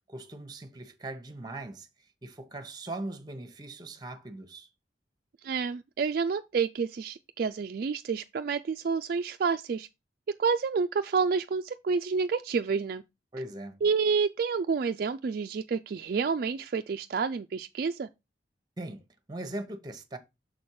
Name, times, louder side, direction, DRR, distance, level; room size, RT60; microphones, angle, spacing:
voice 1, 0.1-1.9 2.2-4.7 13.3-13.8 18.8-19.0 19.3-20.2, right 2 dB, 20° right, 0.9 m, -40 dB
voice 2, 5.4-9.9 10.4-13.0 13.8-18.1, right 5 dB, 50° right, 0.3 m, -29 dB
6.4 x 4.3 x 4.6 m
head